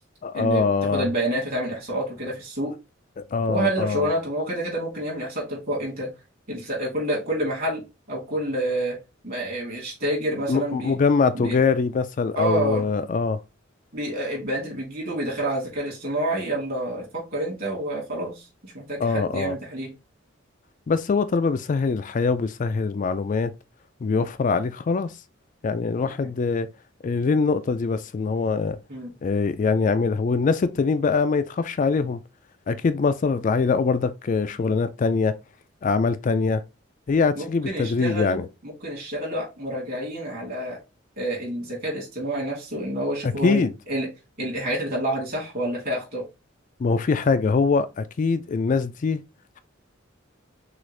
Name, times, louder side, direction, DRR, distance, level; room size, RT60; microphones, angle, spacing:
voice 1, 0.2-1.1 3.2-4.1 10.5-13.4 19.0-19.5 20.9-23.5 24.0-25.1 25.6-26.7 27.0-28.8 29.2-32.2 32.7-35.4 35.8-36.6 37.1-38.5 43.2-43.7 46.8-49.2, left 4 dB, 40° left, 0.3 m, -23 dB
voice 2, 0.9-2.7 3.5-6.1 6.5-9.0 9.2-11.0 11.3-11.6 12.3-12.8 13.9-19.9 26.0-26.1 28.9-29.1 37.4-40.8 41.2-44.1 44.4-46.3, right 1 dB, 50° right, 2.9 m, -28 dB
6.2 x 2.5 x 3.2 m
head